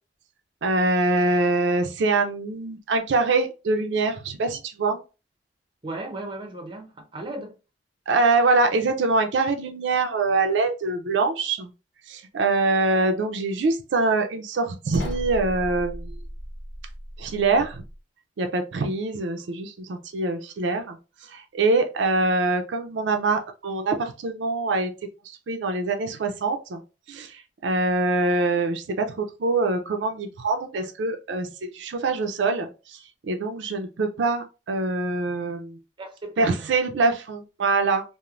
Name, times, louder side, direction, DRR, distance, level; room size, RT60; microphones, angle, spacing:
voice 1, 0.6-5.0 8.1-11.7 12.1-16.2 17.2-17.8 18.4-24.9 25.2-26.8 27.1-35.8 36.4-38.0, right 3 dB, 85° right, 0.4 m, -24 dB
voice 2, 5.8-7.6 36.0-36.7, right 2 dB, 25° right, 0.6 m, -36 dB
sound 1, 14.9-18.0, equal, 80° left, 0.8 m, -35 dB
3.0 x 2.0 x 2.4 m
head